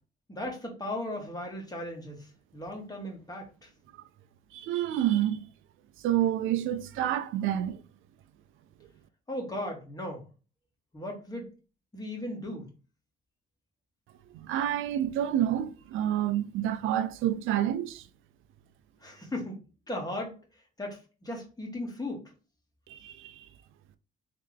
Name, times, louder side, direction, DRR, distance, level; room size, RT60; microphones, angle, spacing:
voice 1, 0.3-3.7 9.3-10.2 10.9-11.5 11.9-12.7 19.0-19.6 19.9-20.4 20.8-22.2, left 1 dB, 20° left, 1.7 m, -37 dB
voice 2, 4.5-5.4 6.0-7.8 14.3-18.1 22.9-23.5, right 11 dB, 85° right, 0.4 m, -28 dB
3.5 x 3.3 x 3.5 m
cardioid pair, 90°, 20 cm